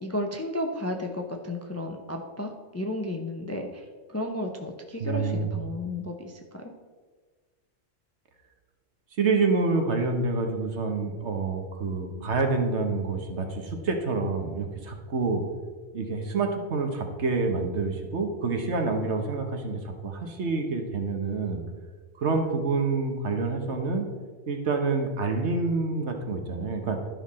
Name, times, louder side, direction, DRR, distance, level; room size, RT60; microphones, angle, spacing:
voice 1, 0.0-6.7, left 1 dB, 20° left, 3 dB, 0.5 m, -33 dB
voice 2, 5.0-5.5 9.2-15.4 15.9-21.6 22.2-24.1 24.5-27.0, right 3 dB, 65° right, 4 dB, 1.4 m, -27 dB
12.0 x 5.7 x 4.2 m, 1.4 s
omnidirectional pair, 1.3 m